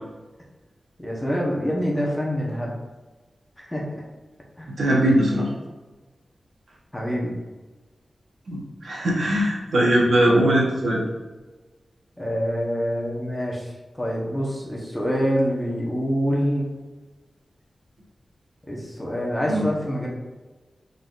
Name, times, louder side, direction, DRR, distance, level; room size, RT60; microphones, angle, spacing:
voice 1, 1.0-2.8 3.6-3.9 4.6-4.7 6.9-7.3 12.2-16.7 18.7-20.1, equal, 15° left, -3 dB, 1.0 m, -26 dB
voice 2, 4.8-5.5 8.5-11.0 19.5-19.6, right 1 dB, 80° right, -4 dB, 1.2 m, -20 dB
4.1 x 3.9 x 2.5 m, 1.2 s
wide cardioid pair, 95°, 0 cm